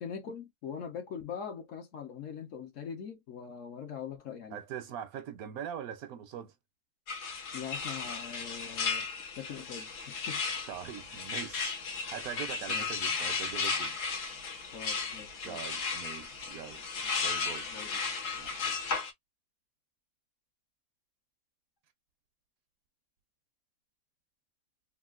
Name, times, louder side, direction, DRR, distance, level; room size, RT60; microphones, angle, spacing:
voice 1, 0.0-4.6 7.5-10.4 12.7-12.9 14.7-15.6 17.0-17.1 17.7-17.9, left 7 dB, 60° left, 1.0 m, -42 dB
voice 2, 4.5-6.5 10.7-11.8 12.1-14.0 15.4-16.8 17.2-17.7 18.4-18.8, right 9 dB, 70° right, 1.0 m, -42 dB
sound 1, 7.1-19.1, left 5 dB, 80° left, 1.5 m, -35 dB
3.6 x 2.4 x 2.3 m
omnidirectional pair, 1.7 m